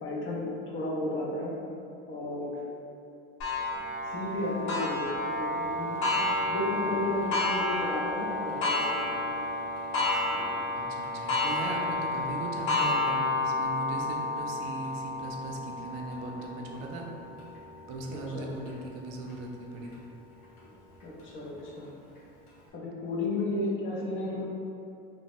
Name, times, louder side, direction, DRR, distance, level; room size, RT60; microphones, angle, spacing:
voice 1, 0.0-1.5 2.1-2.6 4.0-6.1 6.5-8.8 9.1-9.2 18.1-18.5 21.0-21.9 22.7-24.4, left 2 dB, 40° left, -4 dB, 0.6 m, -33 dB
Clock, 3.4-18.7 19.3-19.4 19.9-20.0 21.0-21.1, left 2 dB, 80° left, 0.8 m, -31 dB
voice 2, 10.8-17.0 17.9-19.9, right 3 dB, 90° right, 0 dB, 0.5 m, -39 dB
2.8 x 2.0 x 3.0 m, 2.6 s
cardioid pair, 125°, 31 cm